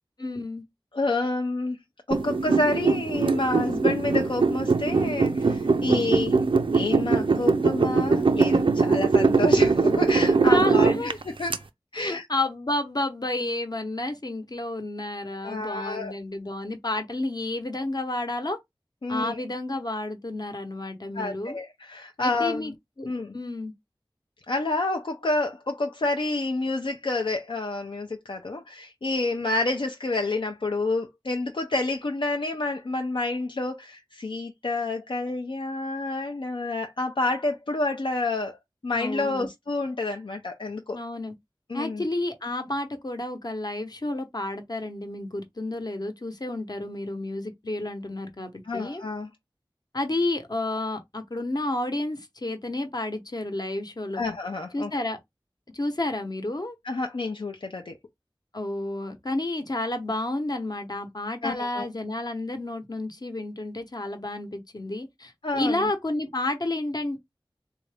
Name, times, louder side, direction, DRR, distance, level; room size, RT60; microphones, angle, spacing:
voice 1, 0.2-0.6 10.5-11.2 11.9-18.6 19.1-21.6 22.2-22.7 23.0-23.1 23.3-23.7 38.9-39.5 40.9-41.3 41.7-49.0 49.9-54.2 54.7-55.2 55.7-56.8 58.5-67.2, left 2 dB, 50° left, 0.9 m, -31 dB
voice 2, 0.9-1.8 2.1-6.4 6.7-11.1 11.4-11.6 11.9-12.3 15.4-16.1 19.0-19.4 21.1-22.7 23.0-23.4 24.5-38.6 38.8-41.0 41.7-42.0 48.6-49.3 54.1-54.9 56.8-58.0 61.4-61.9 65.4-65.9, left 2 dB, 70° left, 0.5 m, -29 dB
sound 1, 2.1-11.6, right 4 dB, 80° right, 0.4 m, -22 dB
3.6 x 2.6 x 3.3 m
wide cardioid pair, 45°, 9 cm